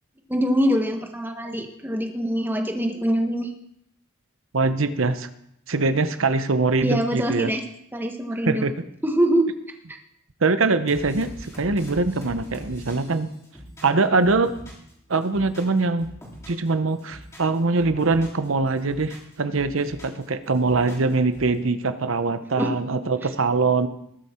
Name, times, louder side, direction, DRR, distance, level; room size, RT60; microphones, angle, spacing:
voice 1, 0.3-3.5 6.8-7.6 7.9-8.6 9.0-9.5 9.9-10.0 22.6-22.7, equal, 10° right, 4 dB, 1.2 m, -23 dB
voice 2, 4.5-5.3 5.7-7.5 8.5-8.8 10.4-13.3 13.8-14.5 15.1-16.1 16.5-23.9, right 3 dB, 75° right, 11 dB, 0.9 m, -23 dB
sound 1, 10.9-14.9 15.2-16.7 17.0-18.4 18.8-20.2 20.5-21.5, equal, 15° left, 3.6 m, -42 dB
20.0 x 8.2 x 4.4 m, 0.75 s
head